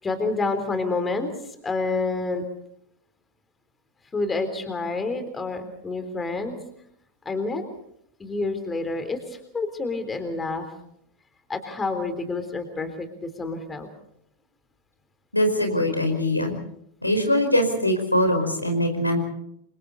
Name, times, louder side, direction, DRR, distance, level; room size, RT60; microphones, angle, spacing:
voice 1, 0.0-2.4 4.1-6.6 7.3-7.6 8.2-10.7 11.5-13.9, left 3 dB, 15° left, 8 dB, 3.8 m, -28 dB
voice 2, 15.3-16.5 17.0-19.2, left 1 dB, 85° left, 4 dB, 5.1 m, -22 dB
28.0 x 26.5 x 4.2 m, 0.72 s
figure-of-eight pair, 90°, 0 cm